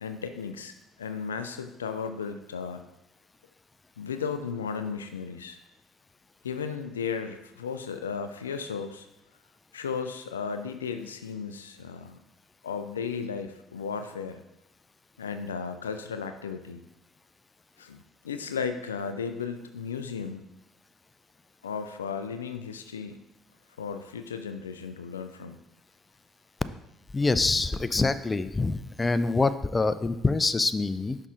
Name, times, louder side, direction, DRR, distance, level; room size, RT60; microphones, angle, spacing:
voice 1, 0.0-2.8 4.0-5.6 6.4-9.1 9.7-12.2 12.6-14.4 15.2-16.8 17.8-20.5 21.6-23.3 23.8-25.6, left 6 dB, 90° left, 8 dB, 0.3 m, -35 dB
voice 2, 27.1-31.2, left 3 dB, 25° left, 12 dB, 0.4 m, -25 dB
6.0 x 5.5 x 3.8 m, 0.91 s
hypercardioid pair, 55°, 0 cm